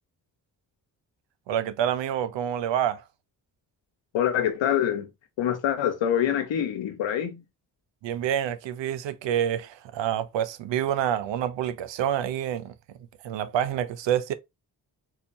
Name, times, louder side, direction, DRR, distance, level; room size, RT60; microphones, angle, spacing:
voice 1, 1.5-3.0 8.0-12.7 13.2-14.3, right 10 dB, 70° right, 0.6 m, -27 dB
voice 2, 4.1-5.1 5.4-7.4, left 10 dB, 75° left, 1.0 m, -25 dB
4.1 x 2.8 x 2.6 m
supercardioid pair, 50°, 45 cm